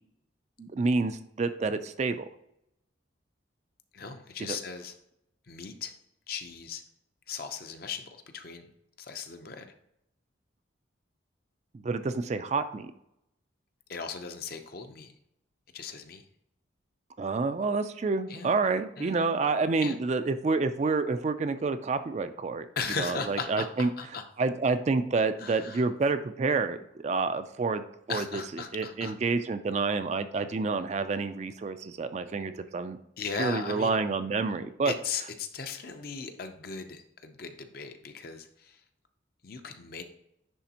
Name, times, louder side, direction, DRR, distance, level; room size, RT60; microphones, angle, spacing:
voice 1, 0.6-2.3 4.4-4.6 11.8-12.9 17.2-22.7 23.0-23.9 24.4-28.4 28.7-33.0 33.4-34.9, right 4 dB, 35° right, 10 dB, 0.3 m, -28 dB
voice 2, 3.9-5.0 5.5-5.9 6.3-6.8 7.3-8.7 9.0-9.7 13.9-15.1 15.7-16.2 18.3-18.5 19.0-19.3 19.8-20.0 22.8-24.3 25.4-25.8 28.1-29.1 33.2-34.0 34.8-38.8 39.4-40.0, left 5 dB, 50° left, 7 dB, 0.6 m, -37 dB
9.9 x 3.4 x 2.9 m, 0.78 s
head